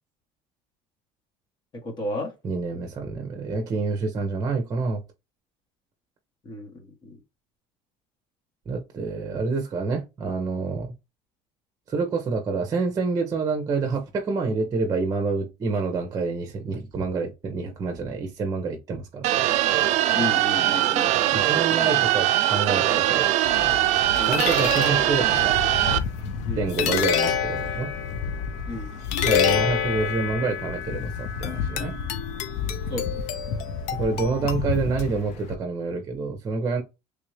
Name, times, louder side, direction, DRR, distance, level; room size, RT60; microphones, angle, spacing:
voice 1, 1.7-2.3 6.4-7.2 20.1-21.1 24.2-24.4 26.4-26.7 28.7-28.9 32.9-33.2, left 1 dB, 35° left, 1.6 m, -33 dB
voice 2, 2.4-5.0 8.7-10.9 11.9-19.3 21.3-23.3 24.2-25.6 26.6-27.9 29.2-31.9 33.9-36.8, right 4 dB, 30° right, 0.8 m, -27 dB
sound 1, 19.2-26.0, right 14 dB, 65° right, 0.4 m, -21 dB
sound 2, 23.4-35.5, left 7 dB, 65° left, 0.7 m, -28 dB
3.4 x 2.7 x 3.1 m
cardioid pair, 120°, 12 cm